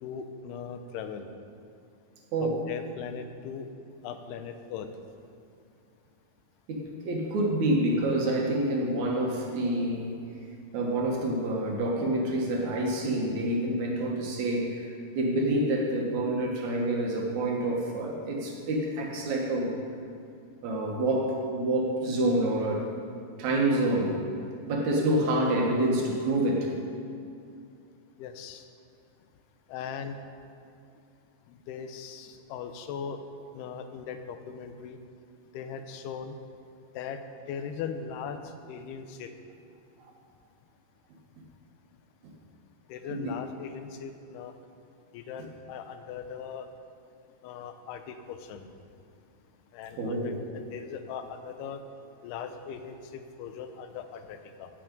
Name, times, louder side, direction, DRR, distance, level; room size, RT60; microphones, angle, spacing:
voice 1, 0.0-1.3 2.4-3.7 4.0-4.9 28.2-28.6 29.7-30.2 31.5-33.2 33.5-35.0 35.5-36.3 37.0-37.2 37.5-38.4 38.7-39.3 42.9-44.5 45.1-46.7 47.4-48.7 49.7-51.8 52.2-54.7, left 7 dB, 80° left, 8 dB, 2.7 m, -39 dB
voice 2, 6.7-10.2 10.7-14.8 15.1-19.8 20.6-22.9 23.4-24.2 24.7-26.7 42.2-42.3 43.1-43.3 50.0-50.4, right 1 dB, 60° right, 0 dB, 2.2 m, -27 dB
16.5 x 7.8 x 5.3 m, 2.5 s
omnidirectional pair, 4.7 m